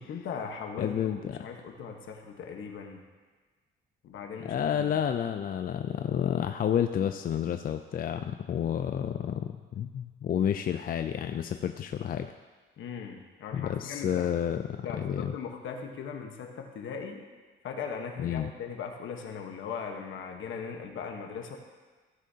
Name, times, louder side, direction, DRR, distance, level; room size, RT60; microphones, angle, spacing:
voice 1, 0.1-3.0 4.0-5.0 12.8-14.3 14.8-17.2 17.6-21.6, left 6 dB, 75° left, 3 dB, 1.3 m, -39 dB
voice 2, 0.8-1.4 4.4-12.3 13.5-15.3 18.2-18.5, left 9 dB, 45° left, 8 dB, 0.4 m, -30 dB
16.0 x 6.4 x 2.8 m, 1.4 s
cardioid pair, 90°, 20 cm